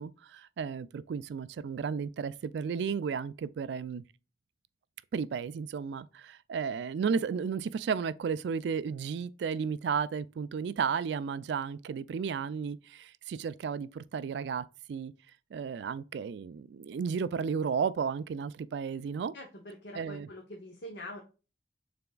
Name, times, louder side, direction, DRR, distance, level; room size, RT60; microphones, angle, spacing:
voice 1, 0.0-4.0 5.1-15.1 15.5-19.3 19.9-20.3, right 6 dB, 65° right, 0.3 m, -33 dB
voice 2, 19.3-21.2, left 1 dB, 60° left, 0.8 m, -44 dB
6.8 x 3.4 x 2.3 m
head